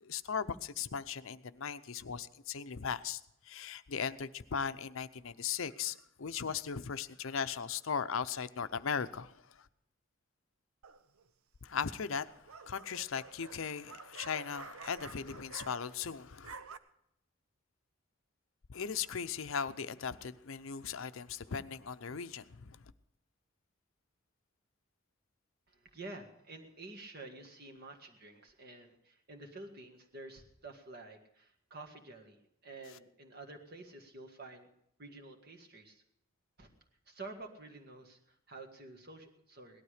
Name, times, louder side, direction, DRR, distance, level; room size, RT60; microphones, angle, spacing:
voice 1, 0.0-9.3 11.6-12.3 12.7-16.5 18.7-22.8, left 6 dB, 70° left, 12 dB, 0.6 m, -38 dB
sound 1, 10.8-11.3 12.2-16.1 16.3-16.8, right 5 dB, 85° right, 0.8 m, -50 dB
voice 2, 25.7-34.7 35.0-36.0 36.6-36.7 37.1-39.8, right 2 dB, 45° right, 3 dB, 1.8 m, -50 dB
18.0 x 12.5 x 4.9 m, 0.76 s
head